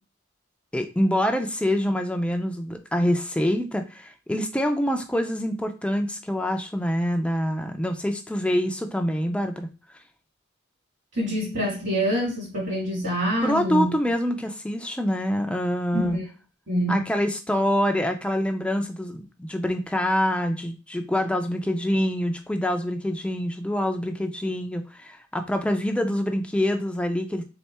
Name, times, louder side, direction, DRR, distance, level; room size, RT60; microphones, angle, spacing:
voice 1, 0.7-9.7 13.4-16.2 16.9-27.4, equal, 5° left, 5 dB, 0.4 m, -25 dB
voice 2, 11.1-13.9 15.9-16.3 16.7-17.0, equal, 60° right, -3 dB, 2.0 m, -26 dB
3.6 x 3.4 x 4.2 m, 0.34 s
head